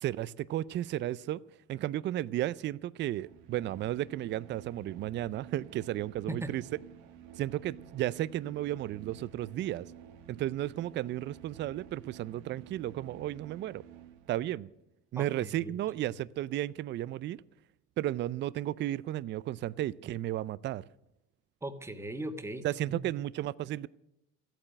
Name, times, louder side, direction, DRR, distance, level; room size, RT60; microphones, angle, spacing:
voice 1, 0.0-1.4 1.7-6.6 7.4-9.9 10.3-13.8 14.3-14.7 15.1-17.4 18.0-20.8 22.6-23.9, right 13 dB, 40° right, 0.5 m, -33 dB
sound 1, 3.0-14.7, right 9 dB, 75° right, 1.8 m, -52 dB
voice 2, 15.2-15.8 21.6-23.0, right 1 dB, 10° right, 1.6 m, -39 dB
14.0 x 9.0 x 10.0 m
supercardioid pair, 110°, 29 cm